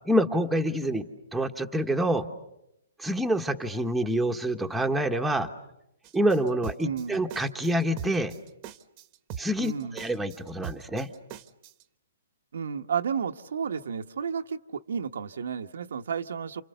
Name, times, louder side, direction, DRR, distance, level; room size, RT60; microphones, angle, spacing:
voice 1, 0.0-1.1 1.3-2.3 3.0-5.5 6.1-8.3 9.4-11.1, right 1 dB, 5° right, 2 dB, 1.2 m, -27 dB
sound 1, 6.0-11.8, right 9 dB, 30° right, 1.1 m, -41 dB
voice 2, 6.8-7.2 9.6-10.0 12.5-16.6, right 6 dB, 80° right, 6 dB, 1.1 m, -32 dB
29.0 x 28.0 x 6.9 m, 0.84 s
hypercardioid pair, 150°, 0 cm